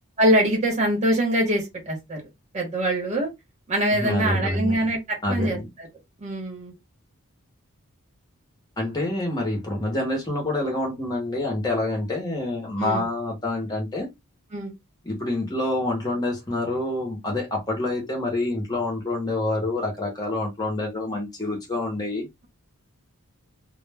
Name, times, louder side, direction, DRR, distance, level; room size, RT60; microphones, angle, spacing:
voice 1, 0.2-2.2 2.5-3.3 3.7-5.9 6.2-6.7 12.8-13.0 14.5-14.7, right 1 dB, 30° right, 0.9 m, -24 dB
voice 2, 3.9-4.8 5.2-5.7 8.8-14.1 15.0-22.3, left 2 dB, 20° left, 0.7 m, -27 dB
2.1 x 2.0 x 3.3 m
head